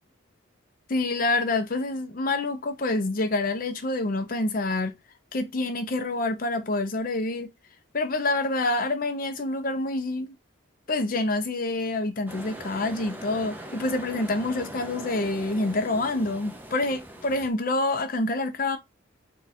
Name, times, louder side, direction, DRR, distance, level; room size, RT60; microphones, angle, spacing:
voice 1, 0.9-5.0 5.3-7.5 7.9-10.4 10.9-18.8, left 2 dB, 45° left, 0.6 m, -27 dB
sound 1, 12.3-17.5, right 1 dB, 10° right, 0.5 m, -41 dB
3.8 x 2.4 x 4.1 m
head